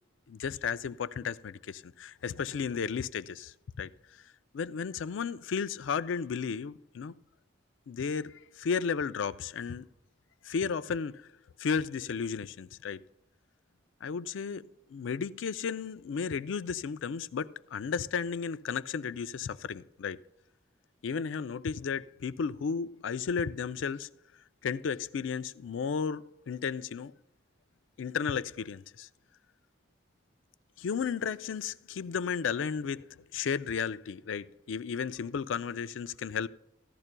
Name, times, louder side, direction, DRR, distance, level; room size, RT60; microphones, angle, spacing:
voice 1, 0.3-3.9 4.5-7.1 7.9-9.9 10.4-11.2 11.6-13.0 14.0-14.7 14.9-20.2 21.0-24.1 24.6-27.1 28.0-29.1 30.8-33.1 33.3-36.5, left 6 dB, 80° left, 0.4 m, -33 dB
15.5 x 12.0 x 2.2 m
head